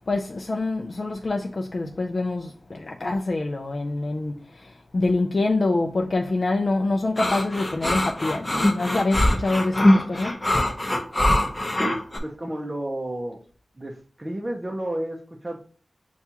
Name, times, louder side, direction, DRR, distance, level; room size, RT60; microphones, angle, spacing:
voice 1, 0.1-4.3 4.9-10.3, left 2 dB, 50° left, 0.4 m, -25 dB
sound 1, 7.2-12.2, left 1 dB, 20° left, 0.7 m, -22 dB
voice 2, 12.2-13.4 13.8-15.6, right 1 dB, 25° right, 0.5 m, -31 dB
6.9 x 2.3 x 2.8 m
wide cardioid pair, 95°, 0 cm